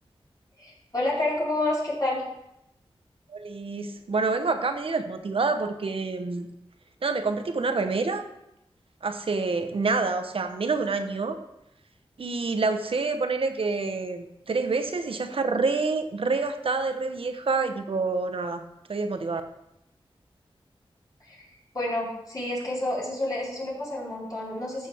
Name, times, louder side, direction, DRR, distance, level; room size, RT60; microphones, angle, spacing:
voice 1, 0.6-2.2 21.2-21.4 21.7-24.9, left 1 dB, 40° left, -7 dB, 4.4 m, -29 dB
voice 2, 3.3-6.5 7.0-8.2 9.0-11.4 12.2-19.4, right 4 dB, 65° right, 8 dB, 0.9 m, -27 dB
14.5 x 6.6 x 3.5 m, 0.85 s
wide cardioid pair, 90°, 10 cm